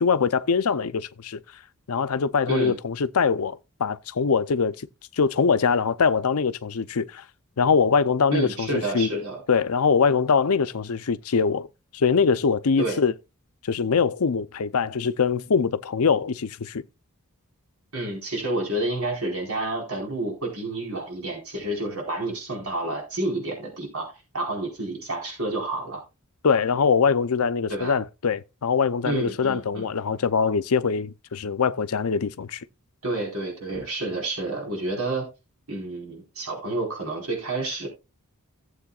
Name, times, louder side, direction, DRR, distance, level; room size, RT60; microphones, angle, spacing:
voice 1, 0.0-1.4 1.9-4.9 5.1-7.2 7.6-9.1 9.5-11.7 11.9-13.1 13.6-16.8 26.4-32.6, left 5 dB, 70° left, 0.6 m, -23 dB
voice 2, 8.3-9.4 12.8-13.0 17.9-26.0 27.7-28.0 29.0-29.9 33.0-35.3 35.7-37.9, right 2 dB, 70° right, 4.6 m, -29 dB
16.5 x 7.8 x 2.4 m
head